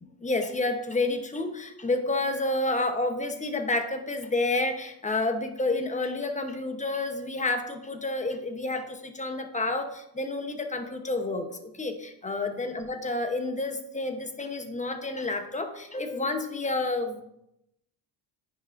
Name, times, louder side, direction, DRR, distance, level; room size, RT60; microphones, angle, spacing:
voice 1, 0.2-17.2, left 2 dB, 15° left, 6 dB, 0.9 m, -29 dB
9.8 x 5.8 x 2.6 m, 0.82 s
cardioid pair, 100°, 44 cm